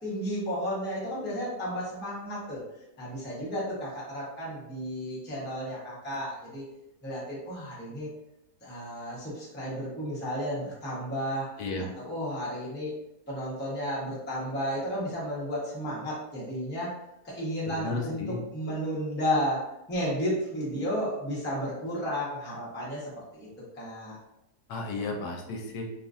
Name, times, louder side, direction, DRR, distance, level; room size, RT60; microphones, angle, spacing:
voice 1, 0.0-2.6 3.0-6.6 7.0-8.1 8.6-13.0 13.3-16.9 17.2-18.2 18.5-23.5 23.7-24.2, equal, 15° left, -7 dB, 0.4 m, -33 dB
voice 2, 11.6-11.9 17.7-18.4 24.7-25.9, left 3 dB, 80° left, 1 dB, 1.1 m, -33 dB
2.9 x 2.4 x 2.4 m, 0.89 s
omnidirectional pair, 1.8 m